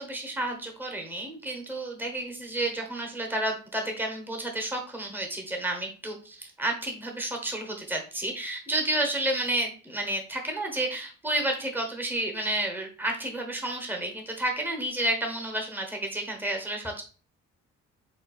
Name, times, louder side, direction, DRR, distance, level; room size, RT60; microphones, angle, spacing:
voice 1, 0.0-17.0, right 1 dB, 5° right, 2 dB, 1.1 m, -31 dB
4.5 x 4.1 x 2.3 m, 0.38 s
cardioid pair, 90°, 30 cm